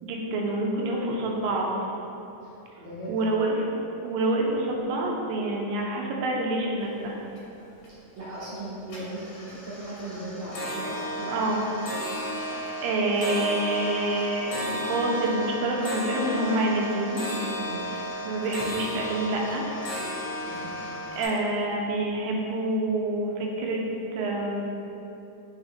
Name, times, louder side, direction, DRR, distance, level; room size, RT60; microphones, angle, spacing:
voice 1, 0.0-1.7 3.1-7.2 11.3-11.6 12.8-14.6 14.9-17.3 17.9-18.0 18.2-19.7 21.2-23.8 24.1-24.6, right 2 dB, 85° right, -1 dB, 2.3 m, -27 dB
voice 2, 2.4-3.3 8.2-11.4 17.6-17.8 20.4-20.7, right 1 dB, 70° right, -11 dB, 1.4 m, -38 dB
sound 1, 6.9-7.0 7.3-7.9 8.3-8.6 8.9-21.3, equal, 70° left, 2.2 m, -34 dB
4.9 x 3.8 x 2.8 m, 2.9 s
omnidirectional pair, 4.0 m